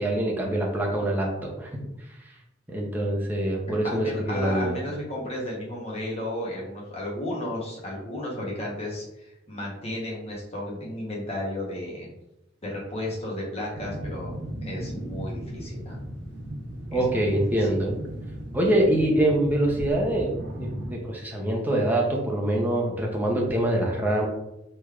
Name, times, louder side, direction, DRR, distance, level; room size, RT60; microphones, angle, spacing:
voice 1, 0.0-1.7 2.7-4.8 16.9-17.9 18.5-20.3 20.6-24.3, right 1 dB, 10° right, -2 dB, 0.6 m, -24 dB
voice 2, 3.8-12.1 12.6-14.3 14.6-16.0 16.9-17.6, left 1 dB, 35° left, -3 dB, 0.9 m, -33 dB
sound 1, 13.7-20.9, equal, 60° right, 0.7 m, -36 dB
3.3 x 3.0 x 2.3 m, 0.90 s
head